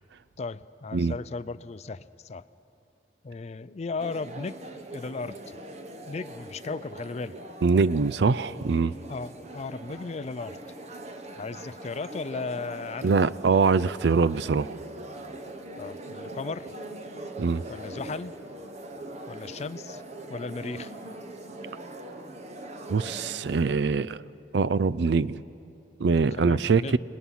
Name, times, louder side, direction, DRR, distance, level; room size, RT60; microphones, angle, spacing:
voice 1, 0.4-2.4 3.2-4.6 4.9-5.6 6.1-7.4 9.1-10.6 11.4-13.1 15.8-16.7 17.7-18.3 19.3-20.0 20.3-20.9 26.3-27.0, left 4 dB, 35° left, 15 dB, 0.4 m, -36 dB
sound 1, 4.0-23.7, right 1 dB, 40° right, 1.2 m, -41 dB
voice 2, 7.6-8.9 13.0-14.8 17.4-17.6 22.9-24.2 24.5-25.4 26.0-27.0, right 4 dB, 65° right, 18 dB, 0.4 m, -23 dB
28.0 x 20.0 x 5.6 m, 2.7 s
head